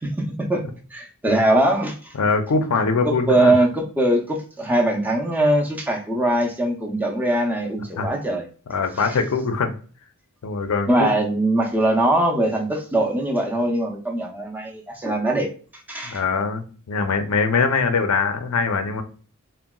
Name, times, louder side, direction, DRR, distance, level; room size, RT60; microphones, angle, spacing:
voice 1, 0.0-2.1 3.0-8.5 9.0-9.2 10.9-15.5 15.9-16.2, right 1 dB, 10° right, 1 dB, 0.4 m, -21 dB
voice 2, 2.2-3.5 8.0-8.1 8.7-9.8 10.4-11.1 16.0-19.0, left 4 dB, 75° left, 7 dB, 0.5 m, -22 dB
3.7 x 2.1 x 2.2 m, 0.39 s
head